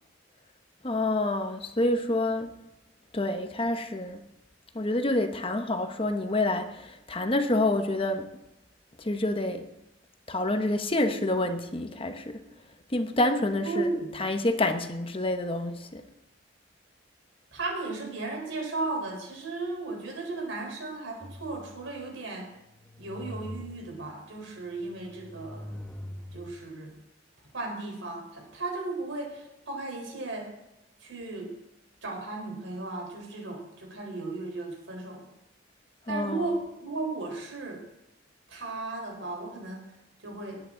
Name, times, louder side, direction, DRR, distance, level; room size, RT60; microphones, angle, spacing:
voice 1, 0.8-2.5 3.1-4.2 4.7-8.3 9.0-9.7 10.3-12.4 12.9-13.9 14.2-16.0 36.1-36.4, left 2 dB, 30° left, 1.0 m, -27 dB
voice 2, 13.6-14.1 17.5-22.5 23.0-25.7 26.3-26.9 27.5-30.5 31.0-31.5 32.0-35.2 36.1-37.8 38.5-39.8 40.2-40.6, right 3 dB, 85° right, 4.3 m, -35 dB
sound 1, 21.2-22.1 22.6-24.2 24.7-26.6, left 1 dB, 5° left, 1.1 m, -43 dB
19.5 x 9.5 x 3.9 m
head